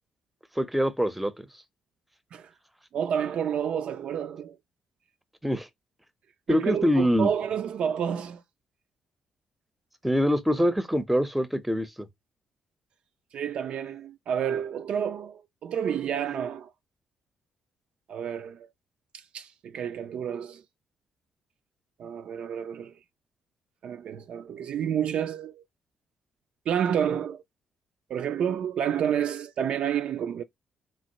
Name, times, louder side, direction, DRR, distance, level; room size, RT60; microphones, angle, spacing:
voice 1, 0.6-1.5 5.4-5.7 6.5-7.3 10.0-12.1, equal, 5° right, 0.6 m, -24 dB
voice 2, 2.9-4.6 6.5-8.4 13.3-16.7 18.1-18.7 19.1-20.6 22.0-22.9 23.8-25.6 26.7-27.4 28.1-30.4, right 8 dB, 55° right, 0.3 m, -29 dB
4.4 x 2.1 x 2.8 m
figure-of-eight pair, 40°, 2 cm